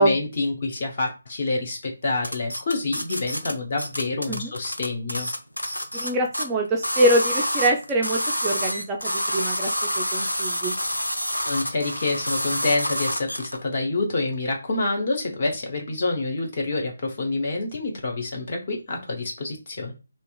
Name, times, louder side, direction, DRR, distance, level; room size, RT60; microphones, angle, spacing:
voice 1, 0.0-5.3 11.5-19.9, left 3 dB, 35° left, 1 dB, 0.8 m, -27 dB
sound 1, 2.2-3.5 3.8-6.1 6.3-6.4 6.8-13.6, equal, 85° left, 0.5 m, -27 dB
voice 2, 5.9-10.8, right 1 dB, 15° right, 0 dB, 0.3 m, -24 dB
2.9 x 2.1 x 2.3 m, 0.29 s
figure-of-eight pair, 150°, 0 cm